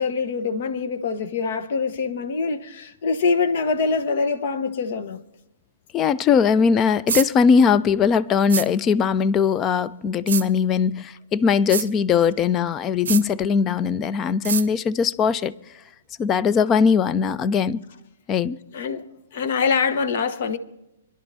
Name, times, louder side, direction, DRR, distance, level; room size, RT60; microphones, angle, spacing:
voice 1, 0.0-5.2 18.7-19.1 19.3-20.6, left 5 dB, 55° left, 1.0 m, -24 dB
voice 2, 5.9-15.5 16.2-17.8 18.3-18.6, left 6 dB, 25° left, 0.5 m, -20 dB
sound 1, 7.1-7.3 8.5-8.7 10.3-10.5 11.7-11.9 13.1-13.2 14.4-14.7, right 7 dB, 65° right, 0.6 m, -25 dB
27.0 x 11.5 x 2.6 m
figure-of-eight pair, 120°, 0 cm